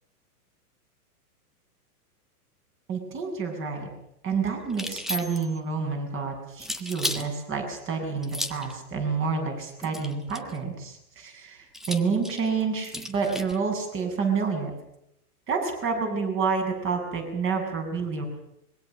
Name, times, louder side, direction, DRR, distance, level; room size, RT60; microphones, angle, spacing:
voice 1, 2.9-3.9 4.2-14.7 15.5-18.3, right 5 dB, 25° right, 4 dB, 7.6 m, -29 dB
sound 1, 4.7-5.6 6.6-7.3 8.2-8.7 9.8-10.6 11.7-13.6, equal, ahead, 1.4 m, -34 dB
25.5 x 22.5 x 6.6 m, 0.78 s
hypercardioid pair, 140°, 45 cm